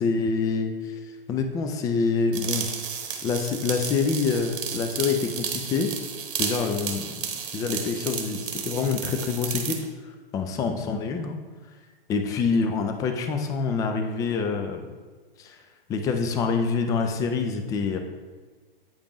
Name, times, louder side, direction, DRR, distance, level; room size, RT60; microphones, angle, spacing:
voice 1, 0.0-1.0 1.3-2.7 3.2-5.9 6.4-7.1 7.5-9.8 10.0-11.4 12.1-14.9 15.4-15.6 15.9-18.0, left 5 dB, 10° left, 6 dB, 0.3 m, -26 dB
sound 1, 2.3-9.8, right 7 dB, 60° right, 1.0 m, -33 dB
8.6 x 5.0 x 3.0 m, 1.4 s
figure-of-eight pair, 110°, 29 cm